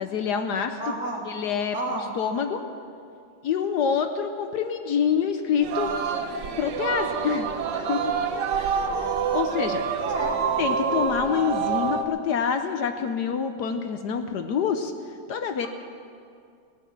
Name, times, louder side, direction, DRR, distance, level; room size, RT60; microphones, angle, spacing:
voice 1, 0.0-0.8 1.3-1.8 2.2-2.6 3.4-5.9 6.6-8.1 8.5-9.0 9.3-9.8 10.6-14.9 15.3-15.7, left 7 dB, 65° left, 8 dB, 1.1 m, -26 dB
voice 2, 0.8-1.3 1.7-2.1 10.0-10.4, right 2 dB, 10° left, -2 dB, 1.3 m, -30 dB
Singing, 5.6-12.0, right 6 dB, 65° right, 1.3 m, -27 dB
18.0 x 9.1 x 7.3 m, 2.4 s
omnidirectional pair, 2.3 m